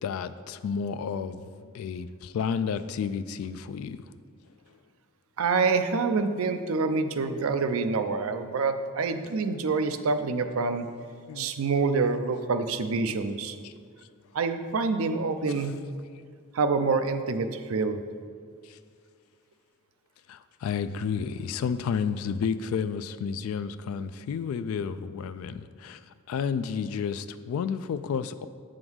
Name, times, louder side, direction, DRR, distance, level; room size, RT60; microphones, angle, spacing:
voice 1, 0.0-4.0 11.3-11.5 12.1-12.3 13.6-13.7 15.5-15.8 18.6-18.8 20.3-28.5, left 6 dB, 85° left, 15 dB, 0.3 m, -31 dB
voice 2, 5.4-10.9 11.4-13.6 14.3-15.7 16.5-18.0, right 4 dB, 90° right, 9 dB, 0.5 m, -26 dB
7.8 x 3.8 x 6.2 m, 2.1 s
head